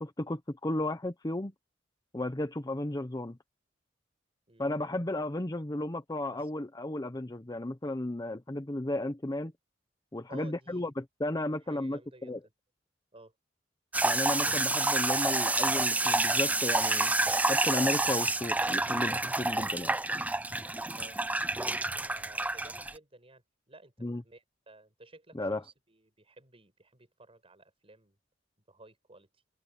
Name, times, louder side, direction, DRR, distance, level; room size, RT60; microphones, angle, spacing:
voice 1, 0.0-1.5 2.1-3.4 4.6-9.5 10.1-12.4 14.0-17.1 17.5-20.0 24.0-24.2 25.3-25.6, left 1 dB, 20° left, 0.9 m, -34 dB
voice 2, 10.3-10.9 11.5-12.4 13.1-13.3 20.9-21.2 21.7-28.2 28.7-29.4, right 2 dB, 30° right, 7.6 m, -55 dB
sound 1, 13.9-22.9, right 2 dB, 10° right, 0.6 m, -28 dB
open air
head